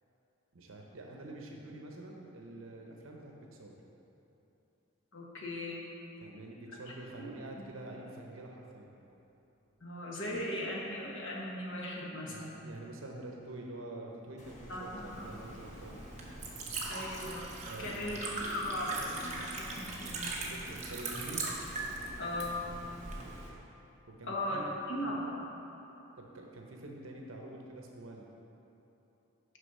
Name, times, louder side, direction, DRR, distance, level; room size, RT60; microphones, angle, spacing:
voice 1, 0.5-3.8 6.2-8.9 12.2-16.0 17.7-18.2 20.4-21.5 24.2-24.7 26.2-28.3, right 2 dB, 75° right, 0 dB, 0.8 m, -46 dB
voice 2, 5.1-5.9 7.2-7.3 7.6-7.7 9.8-12.5 14.7-15.3 16.9-17.5 17.8-20.4 22.2-22.7 24.3-25.4, left 1 dB, 65° left, -3 dB, 1.3 m, -38 dB
sound 1, 14.4-23.5, equal, 35° left, 1.2 m, -52 dB
Liquid, 14.9-23.5, right 3 dB, 35° right, 0.9 m, -40 dB
6.7 x 5.4 x 5.4 m, 3.0 s
head